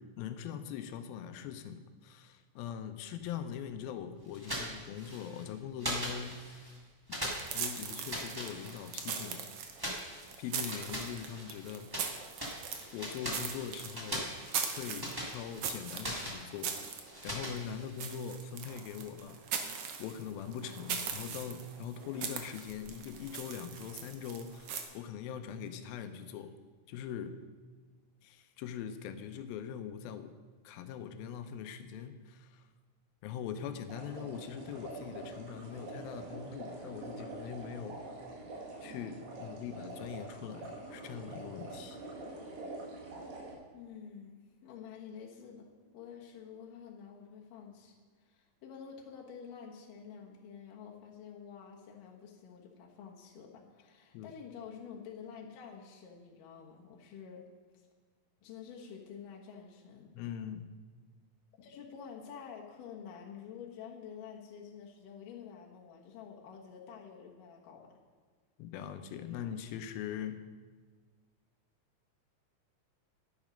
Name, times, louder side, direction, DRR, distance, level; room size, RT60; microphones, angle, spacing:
voice 1, 0.0-6.7 7.1-7.2 7.5-9.4 10.4-12.2 12.9-14.3 14.6-19.4 20.0-26.5 26.9-27.4 28.2-30.3 30.6-32.6 33.2-38.0 38.8-42.0 54.1-54.3 60.1-60.7 68.6-70.4, left 8 dB, 90° left, 9 dB, 2.6 m, -42 dB
sound 1, 4.3-5.4 5.8-6.8 7.1-9.2 9.8-12.1 12.4-18.2, equal, 35° right, 0.3 m, -41 dB
sound 2, 7.2-24.8, right 6 dB, 90° right, 1.2 m, -41 dB
sound 3, 33.9-43.5, right 2 dB, 75° right, 3.8 m, -45 dB
voice 2, 43.7-57.4 58.4-60.1 61.6-67.9, left 7 dB, 70° left, -1 dB, 2.8 m, -49 dB
10.5 x 10.0 x 5.1 m, 1.5 s
omnidirectional pair, 4.1 m